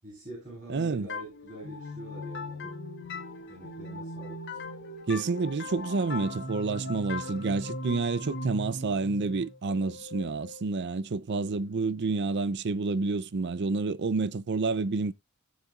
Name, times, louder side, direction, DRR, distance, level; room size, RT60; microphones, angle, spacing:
voice 1, 0.0-2.7 3.5-4.4 11.4-11.8, right 1 dB, 35° right, 7.7 m, -45 dB
voice 2, 0.7-1.1 5.1-15.1, right 3 dB, 55° right, 0.5 m, -29 dB
sound 1, 1.1-10.6, left 1 dB, 55° left, 1.8 m, -39 dB
18.0 x 7.2 x 2.4 m
head